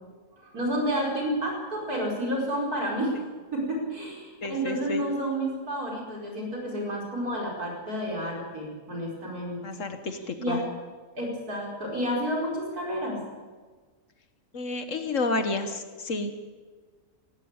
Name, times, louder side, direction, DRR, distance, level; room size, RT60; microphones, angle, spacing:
voice 1, 0.3-3.1 3.5-9.6 10.4-10.6 11.2-13.2, equal, 80° right, -1 dB, 5.3 m, -30 dB
voice 2, 4.4-5.0 9.6-10.7 14.5-16.5, left 3 dB, 55° left, 8 dB, 1.8 m, -31 dB
17.5 x 17.0 x 8.9 m, 1.4 s
omnidirectional pair, 1.6 m